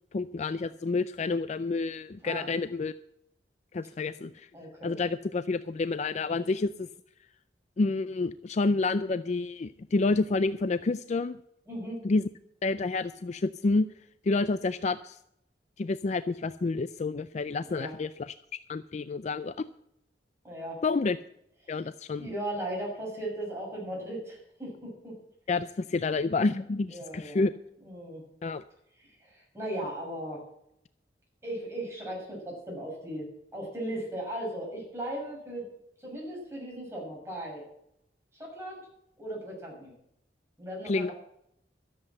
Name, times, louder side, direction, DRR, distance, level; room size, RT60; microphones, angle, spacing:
voice 1, 0.1-2.9 3.7-4.5 4.8-6.9 7.8-11.4 12.0-12.2 12.6-13.9 14.2-15.2 15.8-18.3 18.7-19.5 20.8-21.2 21.7-22.3 25.5-27.5 28.4-28.6 40.8-41.1, left 3 dB, 40° left, 13 dB, 0.4 m, -29 dB
voice 2, 4.5-5.0 11.7-12.0 17.7-18.0 20.4-20.8 21.6-21.8 22.2-25.2 26.9-27.5 27.8-28.2 29.0-30.4 31.4-35.7 36.0-37.7 38.3-38.9 39.2-39.9 40.6-41.1, right 1 dB, 15° right, -2 dB, 6.4 m, -37 dB
13.0 x 7.9 x 7.6 m, 0.75 s
head